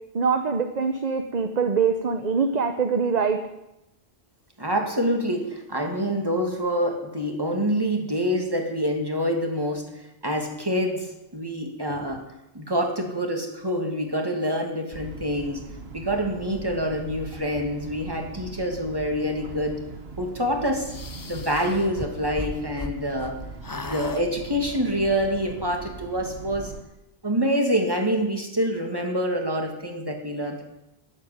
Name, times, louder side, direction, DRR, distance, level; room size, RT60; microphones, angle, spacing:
voice 1, 0.1-3.4, right 5 dB, 40° right, 7 dB, 1.0 m, -23 dB
voice 2, 4.6-9.8 10.2-12.2 12.5-15.6 15.9-19.8 20.2-20.9 21.3-23.4 23.7-26.7 27.2-30.6, equal, 20° right, 2 dB, 2.6 m, -26 dB
sound 1, 14.9-26.8, right 4 dB, 70° right, 1.6 m, -40 dB
sound 2, 20.9-23.3 23.6-24.2, left 3 dB, 25° left, 0.6 m, -36 dB
12.5 x 11.0 x 9.4 m, 0.91 s
omnidirectional pair, 1.1 m